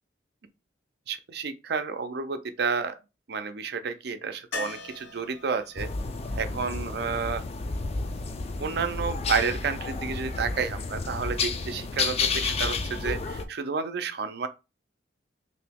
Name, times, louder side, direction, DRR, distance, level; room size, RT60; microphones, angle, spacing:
voice 1, 1.1-3.0 3.3-5.9 6.3-7.4 8.6-14.5, right 5 dB, 60° right, 0.5 m, -30 dB
sound 1, 4.5-8.4 11.1-11.2 11.4-11.5, left 3 dB, 75° left, 0.9 m, -42 dB
sound 2, 5.8-13.4, left 4 dB, 35° left, 0.4 m, -31 dB
3.0 x 2.7 x 3.5 m
head